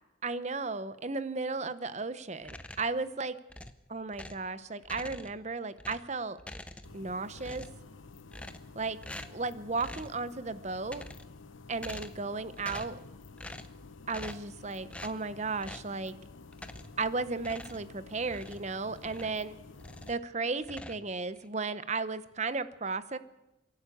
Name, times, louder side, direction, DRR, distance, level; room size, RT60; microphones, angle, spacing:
voice 1, 0.2-3.4 3.9-6.4 6.9-7.7 8.7-9.0 9.3-11.1 11.7-13.0 14.1-16.1 17.0-19.6 20.1-23.2, right 3 dB, 35° right, 14 dB, 0.8 m, -35 dB
sound 1, 2.4-3.0 3.5-4.5 4.8-5.5 5.8-7.1 7.3-7.9 8.3-8.8 9.0-9.4 9.8-10.2 10.7-11.4 11.8-12.3 12.6-13.0 13.4-13.8 14.1-14.5 14.9-15.2 15.6-15.9 16.5-17.0 17.4-19.4 19.8-20.3 20.6-21.5, left 1 dB, 5° left, 0.7 m, -46 dB
sound 2, 6.8-20.1, left 4 dB, 75° left, 0.9 m, -51 dB
27.5 x 11.5 x 8.5 m, 1.0 s
head